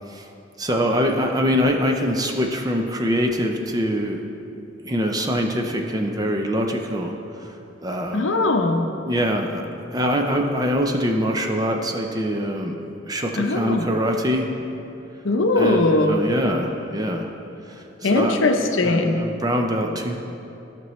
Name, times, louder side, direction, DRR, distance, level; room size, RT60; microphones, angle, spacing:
voice 1, 0.6-4.2 4.8-7.1 7.8-8.3 9.1-9.7 9.9-12.8 13.1-14.5 15.6-17.3 18.0-18.4 18.8-20.2, equal, 20° right, 3 dB, 0.5 m, -23 dB
voice 2, 8.1-8.9 13.4-13.9 15.2-16.2 18.0-19.3, left 2 dB, 75° left, 5 dB, 0.7 m, -20 dB
14.5 x 6.0 x 3.1 m, 2.9 s
head